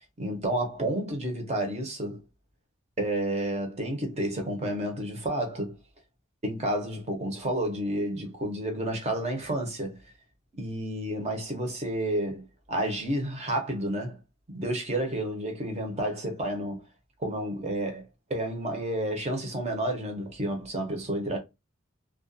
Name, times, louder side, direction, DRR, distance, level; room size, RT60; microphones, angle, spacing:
voice 1, 0.2-2.2 3.0-5.7 6.4-10.0 10.6-14.2 14.5-16.8 17.2-21.4, right 1 dB, 35° right, 0.7 m, -30 dB
2.3 x 2.2 x 2.5 m
head